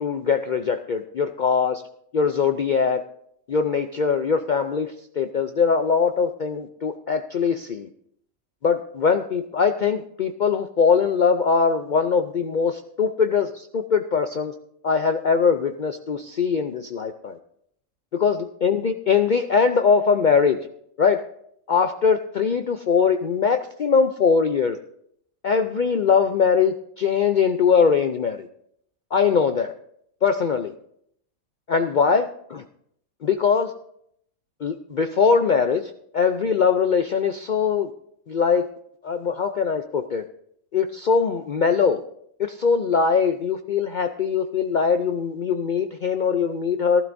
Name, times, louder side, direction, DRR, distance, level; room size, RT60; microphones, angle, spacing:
voice 1, 0.0-1.8 2.1-3.0 3.5-7.9 8.6-14.5 14.8-17.4 18.1-20.6 21.0-21.2 21.7-24.8 25.4-28.5 29.1-29.7 30.2-30.7 31.7-32.6 33.2-33.7 34.6-37.9 38.3-38.7 39.0-40.2 40.7-42.0 42.4-47.0, left 6 dB, 80° left, 7 dB, 0.4 m, -21 dB
18.5 x 12.0 x 2.6 m, 0.70 s
omnidirectional pair, 1.5 m